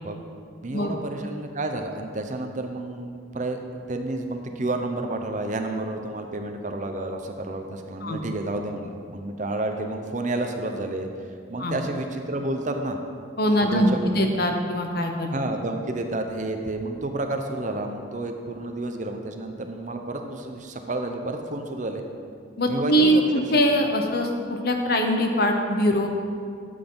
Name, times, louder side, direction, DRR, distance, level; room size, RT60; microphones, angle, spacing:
voice 1, 0.6-3.6 3.9-11.1 11.5-13.0 13.6-14.1 15.3-22.0 22.7-23.2 23.5-23.6, right 2 dB, 40° right, 5 dB, 0.7 m, -30 dB
voice 2, 13.4-15.3 22.6-26.1, equal, 50° left, 4 dB, 1.0 m, -22 dB
12.5 x 8.0 x 3.9 m, 2.3 s
head